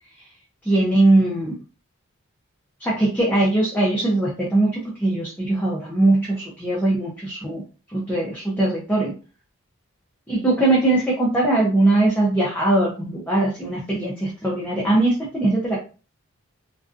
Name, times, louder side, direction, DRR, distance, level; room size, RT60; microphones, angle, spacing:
voice 1, 0.6-1.5 2.8-7.6 7.9-9.2 10.3-15.8, right 2 dB, 5° left, -6 dB, 0.5 m, -20 dB
2.5 x 2.3 x 2.4 m, 0.34 s
head